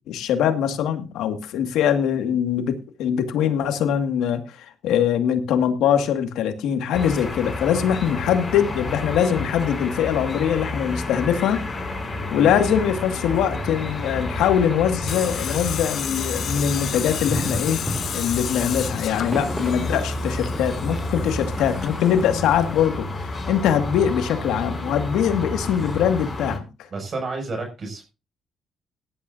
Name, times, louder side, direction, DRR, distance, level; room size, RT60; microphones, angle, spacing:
voice 1, 0.1-11.9 12.3-17.8 18.1-26.7, left 9 dB, 90° left, 7 dB, 2.0 m, -22 dB
sound 1, 6.9-26.6, left 2 dB, 25° left, 6.5 m, -30 dB
Tools, 15.1-22.9, left 8 dB, 65° left, 1.1 m, -32 dB
sound 2, 16.8-22.8, equal, ahead, 3.4 m, -34 dB
voice 2, 26.9-28.0, right 3 dB, 45° right, 3 dB, 6.6 m, -31 dB
18.0 x 12.0 x 2.7 m, 0.28 s
cardioid pair, 90°, 0 cm